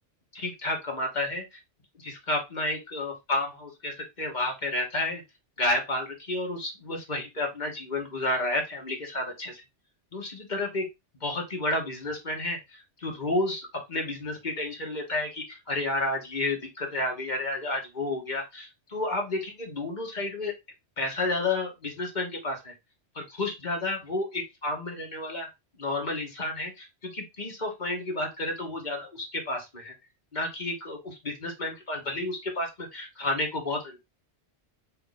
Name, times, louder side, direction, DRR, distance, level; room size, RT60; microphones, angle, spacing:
voice 1, 0.3-1.6 2.0-5.2 5.6-9.6 10.1-10.9 11.2-20.5 21.0-22.7 23.1-25.5 25.8-29.9 30.3-34.0, left 2 dB, 40° left, 1 dB, 1.4 m, -31 dB
4.5 x 2.9 x 3.9 m, 0.22 s
omnidirectional pair, 1.2 m